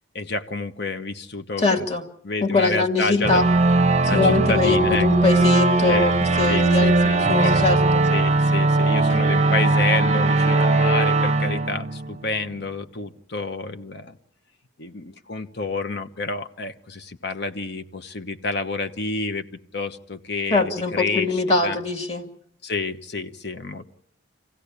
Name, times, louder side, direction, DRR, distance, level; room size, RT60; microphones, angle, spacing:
voice 1, 0.1-1.9 2.2-3.4 4.0-5.1 5.8-6.1 6.4-7.6 8.1-14.2 14.8-19.4 19.7-21.8 22.6-23.8, left 3 dB, 55° left, 9 dB, 1.2 m, -29 dB
voice 2, 1.6-2.0 2.4-3.5 4.0-6.1 6.4-7.0 7.3-8.1 20.5-22.3, left 3 dB, 30° left, 6 dB, 2.4 m, -22 dB
sound 1, 3.2-12.6, right 2 dB, 35° right, 0.9 m, -19 dB
26.5 x 16.5 x 8.5 m, 0.68 s
head